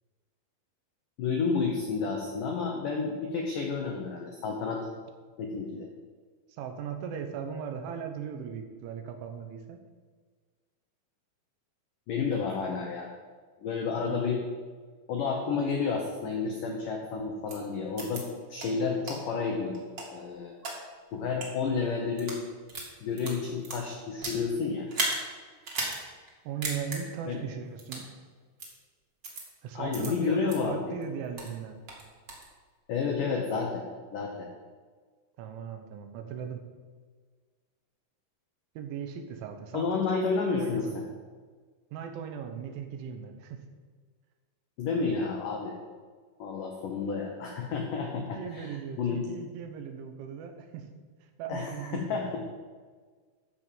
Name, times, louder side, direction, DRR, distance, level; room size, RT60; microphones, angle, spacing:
voice 1, 1.2-4.9 5.4-5.9 12.1-13.1 13.6-14.4 15.1-19.9 20.1-20.5 21.1-22.4 23.0-24.9 27.3-27.4 29.7-31.0 32.9-33.9 34.1-34.5 39.7-41.0 44.8-45.8 46.4-49.3 51.5-52.4, left 5 dB, 90° left, 1 dB, 1.8 m, -31 dB
voice 2, 6.5-9.8 14.1-14.2 26.5-28.1 29.6-31.8 35.4-36.6 38.8-41.0 41.9-43.6 48.0-50.9 51.4-52.2, right 7 dB, 85° right, 6 dB, 3.5 m, -38 dB
sound 1, 17.5-17.6 18.0-18.2 18.6-18.7 19.1-19.2 19.7-20.7 21.3-21.5 22.0-22.4 22.7-24.4 24.9-25.2 25.6-26.0 26.3-26.4 26.6-27.0 27.8-28.1 28.6-28.7 29.2-29.4 29.9-30.1 30.5-30.6 31.0-31.5 31.9-32.4, right 2 dB, 40° right, 2.1 m, -34 dB
13.0 x 5.1 x 7.5 m, 1.5 s
omnidirectional pair, 5.4 m